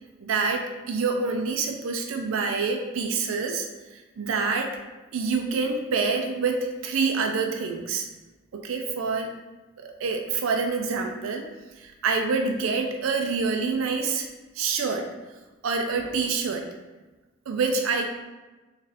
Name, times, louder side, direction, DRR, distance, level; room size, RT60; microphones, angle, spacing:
voice 1, 0.2-4.8 5.1-8.1 8.5-9.3 9.8-11.5 11.8-14.3 14.5-15.1 15.6-16.7 17.5-18.1, right 4 dB, 85° right, 3 dB, 0.4 m, -27 dB
3.9 x 3.1 x 2.6 m, 1.2 s
head